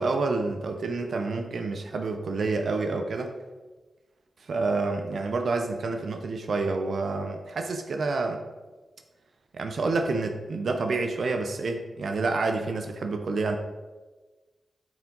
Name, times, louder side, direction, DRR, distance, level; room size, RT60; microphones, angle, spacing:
voice 1, 0.0-3.3 4.4-8.4 9.5-13.6, right 3 dB, 75° right, 5 dB, 0.7 m, -28 dB
8.9 x 4.9 x 3.9 m, 1.2 s
cardioid pair, 55°, 0 cm